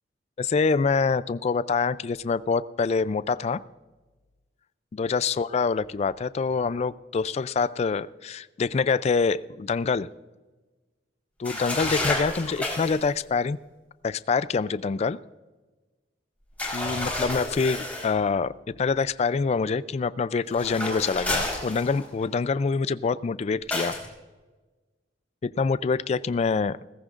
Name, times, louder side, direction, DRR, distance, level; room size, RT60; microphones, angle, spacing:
voice 1, 0.4-3.6 4.9-10.1 11.4-13.6 14.0-15.2 16.7-23.9 25.4-26.8, left 5 dB, 35° left, 17 dB, 0.3 m, -25 dB
sound 1, 11.4-13.1 16.6-18.1 20.5-22.2 23.7-24.1, left 1 dB, 10° left, 4.1 m, -30 dB
18.0 x 15.5 x 2.5 m, 1.2 s
head